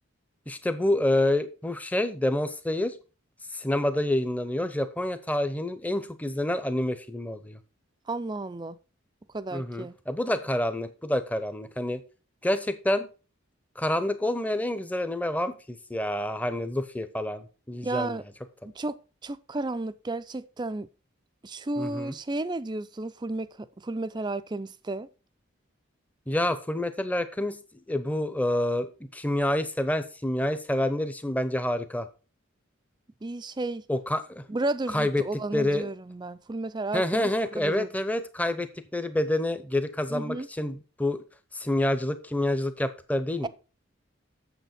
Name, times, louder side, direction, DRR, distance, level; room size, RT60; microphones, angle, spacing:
voice 1, 0.5-2.9 3.5-7.6 9.5-12.0 12.4-13.1 13.8-18.2 21.8-22.1 26.3-27.6 27.9-32.1 33.9-34.5 34.9-35.2 35.5-35.9 36.9-41.2 41.5-43.5, left 1 dB, 10° left, 0.8 m, -28 dB
voice 2, 8.1-8.8 9.3-10.0 17.8-18.2 18.6-20.9 21.4-25.1 33.2-33.8 34.5-37.9 40.1-40.5 43.4-43.5, right 2 dB, 20° right, 0.5 m, -33 dB
8.2 x 7.1 x 4.4 m
head